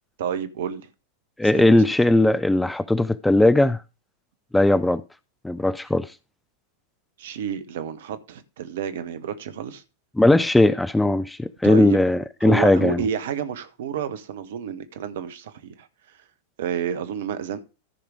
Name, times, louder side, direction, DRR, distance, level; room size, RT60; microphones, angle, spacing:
voice 1, 0.2-0.9 1.4-1.7 7.2-9.8 11.6-12.0 12.4-16.2 16.6-17.6, right 8 dB, 55° right, 1.1 m, -30 dB
voice 2, 1.4-3.8 4.5-5.0 5.4-6.1 10.2-13.0, left 1 dB, 5° left, 0.4 m, -18 dB
14.0 x 5.0 x 4.8 m
figure-of-eight pair, 90°, 0 cm